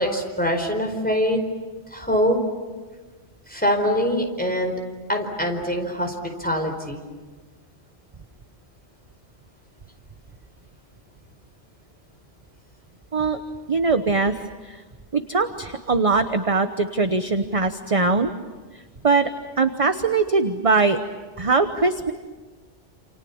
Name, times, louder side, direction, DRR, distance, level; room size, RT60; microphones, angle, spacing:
voice 1, 0.0-1.4 1.9-2.4 3.5-4.7 5.1-6.1 6.4-7.0, equal, 5° left, 3 dB, 4.6 m, -23 dB
voice 2, 13.7-14.8 15.1-18.3 19.0-19.3 19.6-21.0 21.4-22.1, right 4 dB, 30° right, 8 dB, 1.0 m, -21 dB
28.5 x 28.5 x 7.2 m, 1.4 s
omnidirectional pair, 1.2 m